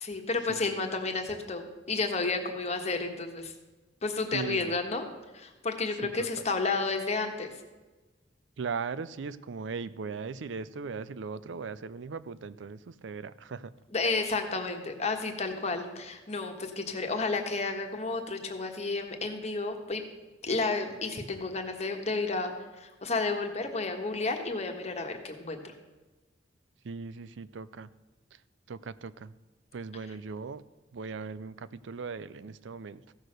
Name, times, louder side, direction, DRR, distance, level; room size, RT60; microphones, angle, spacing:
voice 1, 0.0-3.5 4.0-5.0 5.3-7.5 13.9-20.0 20.4-25.7, left 3 dB, 35° left, 4 dB, 1.4 m, -31 dB
voice 2, 4.3-4.8 6.0-6.1 8.6-13.7 26.8-27.9 28.7-29.3 29.7-30.6 30.9-33.1, right 5 dB, 80° right, 16 dB, 0.5 m, -38 dB
15.5 x 6.4 x 6.5 m, 1.2 s
head